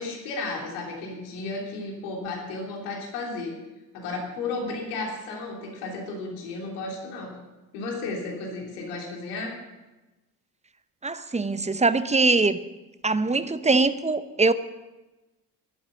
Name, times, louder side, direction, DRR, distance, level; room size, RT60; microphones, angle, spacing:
voice 1, 0.0-3.5 3.9-7.3 7.7-9.5, left 3 dB, 75° left, 0 dB, 3.3 m, -33 dB
voice 2, 11.0-12.6 13.0-14.5, right 3 dB, 15° right, 13 dB, 0.9 m, -22 dB
12.0 x 12.0 x 7.0 m, 1.1 s
hypercardioid pair, 45°, 49 cm